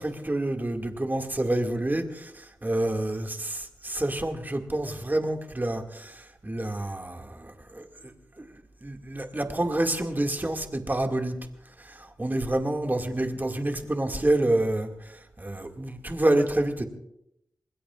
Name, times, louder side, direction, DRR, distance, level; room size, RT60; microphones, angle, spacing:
voice 1, 0.0-8.5 8.8-11.4 11.8-16.8, right 1 dB, 25° right, 3 dB, 2.2 m, -28 dB
26.5 x 20.5 x 2.5 m, 0.81 s
cardioid pair, 50°, 7 cm